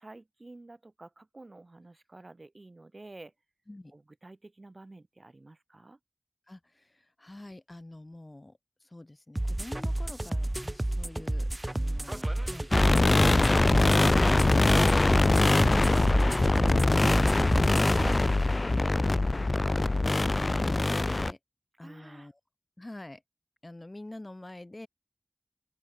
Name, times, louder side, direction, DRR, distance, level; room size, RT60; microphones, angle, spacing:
voice 1, 0.0-3.3 3.9-6.0 11.8-12.0 16.1-16.5 19.0-19.2 21.8-22.3, right 2 dB, 85° right, 4.6 m, -50 dB
voice 2, 6.5-11.5 16.7-18.9 19.4-20.2 20.6-21.4 21.8-22.4 22.8-23.2 23.6-24.9, left 1 dB, 55° left, 7.9 m, -47 dB
sound 1, 9.4-18.2, right 1 dB, 40° right, 1.9 m, -31 dB
sound 2, 12.7-21.3, left 2 dB, 90° left, 0.4 m, -23 dB
open air
wide cardioid pair, 45°, 0 cm